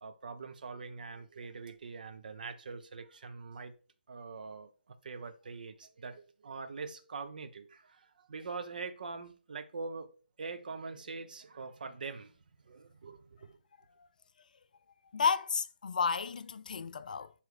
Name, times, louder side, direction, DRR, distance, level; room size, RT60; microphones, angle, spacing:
voice 1, 0.0-3.7 4.1-4.7 5.0-10.1 10.4-12.3 12.6-13.6, right 4 dB, 55° right, 0.8 m, -43 dB
voice 2, 15.1-17.3, left 5 dB, 50° left, 0.4 m, -32 dB
7.9 x 3.4 x 4.7 m
figure-of-eight pair, 145°, 5 cm